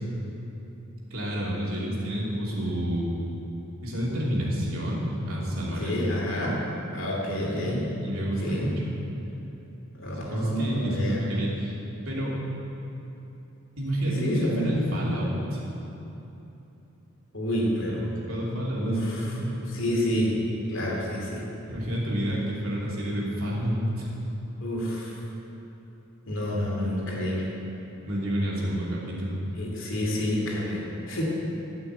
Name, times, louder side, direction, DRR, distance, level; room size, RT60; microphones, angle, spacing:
voice 1, 1.1-3.1 3.8-6.3 7.3-9.0 10.3-11.7 12.1-12.4 13.8-15.6 18.3-19.6 21.7-24.1 28.0-29.4, equal, 85° right, -5 dB, 2.9 m, -29 dB
voice 2, 5.8-6.6 6.9-7.8 8.4-8.7 9.9-11.2 14.2-14.7 17.3-18.0 18.8-19.4 19.7-20.4 20.7-21.5 24.6-25.1 26.3-27.5 29.6-31.2, equal, 65° left, -3 dB, 2.8 m, -29 dB
13.0 x 6.1 x 8.4 m, 3.0 s
head